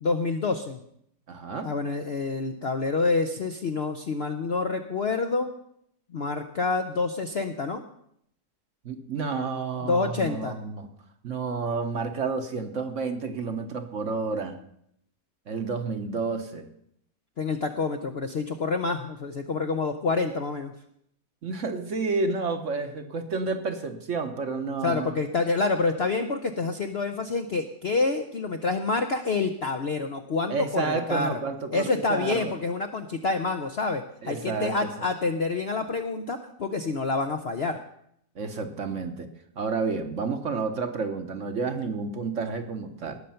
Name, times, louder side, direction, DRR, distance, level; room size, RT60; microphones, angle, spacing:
voice 1, 0.0-0.8 1.6-5.5 6.1-7.8 9.8-10.6 17.4-20.7 24.8-31.4 31.7-37.8, left 3 dB, 55° left, 6 dB, 0.7 m, -27 dB
voice 2, 1.3-1.7 8.8-10.9 11.2-14.6 15.5-16.6 21.4-25.1 30.5-32.5 34.2-34.9 38.4-39.3 39.6-43.2, right 4 dB, 50° right, 7 dB, 1.1 m, -30 dB
19.0 x 6.6 x 5.7 m, 0.71 s
omnidirectional pair, 1.9 m